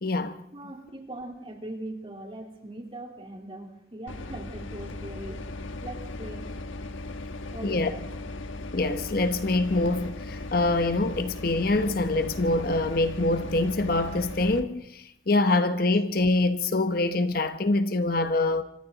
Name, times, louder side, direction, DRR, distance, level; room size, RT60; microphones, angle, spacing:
voice 1, 0.0-0.3 7.6-7.9 8.7-18.6, left 2 dB, 50° left, 0.9 m, -25 dB
voice 2, 0.5-5.5 5.8-6.5 7.5-8.0, right 1 dB, 30° right, 3.7 m, -40 dB
sound 1, 4.1-14.6, left 2 dB, 90° left, 1.3 m, -37 dB
27.0 x 25.0 x 4.0 m
head